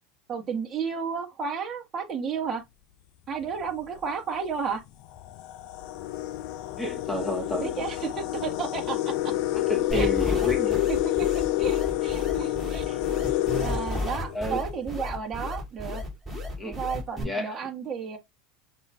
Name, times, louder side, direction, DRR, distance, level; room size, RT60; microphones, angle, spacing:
voice 1, 0.3-2.6 3.3-4.8 7.6-9.3 9.9-10.1 10.9-11.3 11.6-13.1 13.6-16.0 16.6-18.2, right 6 dB, 30° right, 1.3 m, -32 dB
sound 1, 3.4-3.7 4.5-4.6 5.0-14.8, left 15 dB, 60° left, 0.4 m, -28 dB
voice 2, 6.8-7.8 9.5-10.8 14.3-14.6 16.6-16.8 17.2-17.6, left 2 dB, 5° left, 0.8 m, -30 dB
sound 2, 9.9-17.2, left 1 dB, 10° right, 2.6 m, -33 dB
5.9 x 2.7 x 2.3 m
supercardioid pair, 120°, 0 cm